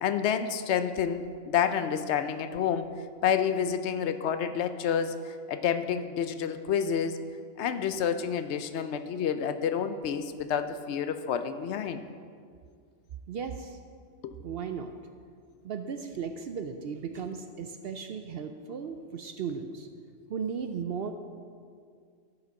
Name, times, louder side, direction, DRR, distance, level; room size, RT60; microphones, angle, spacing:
voice 1, 0.0-2.9 3.2-7.2 7.6-12.0 14.2-14.3, left 8 dB, 70° left, 10 dB, 0.8 m, -29 dB
voice 2, 13.3-13.8 14.4-14.9 15.6-19.9 20.3-21.1, right 6 dB, 65° right, 7 dB, 0.7 m, -36 dB
12.5 x 5.2 x 5.2 m, 2.1 s
omnidirectional pair, 1.3 m